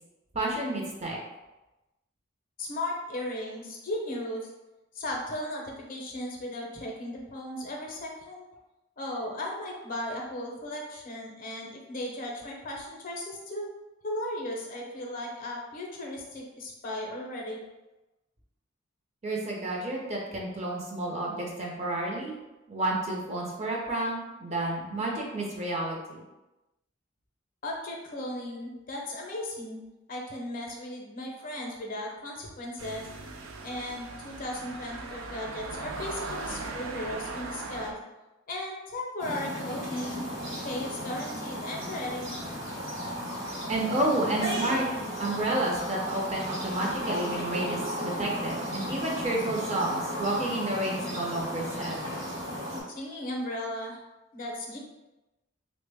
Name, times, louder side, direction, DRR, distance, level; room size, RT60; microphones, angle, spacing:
voice 1, 0.3-1.2 19.2-22.3 22.7-26.2 43.7-44.9 45.2-52.0, right 1 dB, 35° right, -2 dB, 0.6 m, -30 dB
voice 2, 2.6-4.5 4.9-8.5 9.0-13.6 14.0-17.6 27.6-29.8 30.1-33.1 33.6-38.0 38.5-40.3 40.6-42.3 52.9-54.0 54.3-54.8, left 1 dB, 45° left, 0 dB, 0.6 m, -36 dB
sound 1, 32.8-37.9, right 3 dB, 90° right, 0.4 m, -39 dB
sound 2, 39.2-52.8, equal, 65° right, 1.0 m, -35 dB
3.4 x 2.1 x 3.4 m, 1.0 s
head